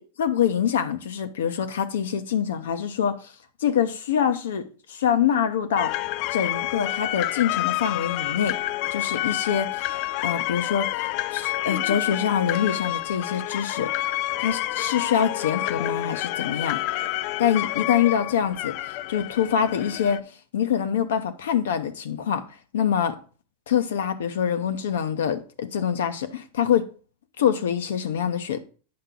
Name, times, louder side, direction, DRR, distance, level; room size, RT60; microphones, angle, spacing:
voice 1, 0.2-3.2 3.6-6.0 6.3-8.6 8.9-9.8 10.2-10.9 11.3-13.9 14.4-16.8 17.4-18.8 19.1-20.2 20.5-22.5 22.7-23.2 23.7-26.9 27.4-28.6, left 8 dB, 80° left, 0.9 m, -25 dB
sound 1, 5.8-20.2, left 17 dB, 55° left, 0.3 m, -28 dB
8.7 x 5.6 x 3.8 m
hypercardioid pair, 105°, 0 cm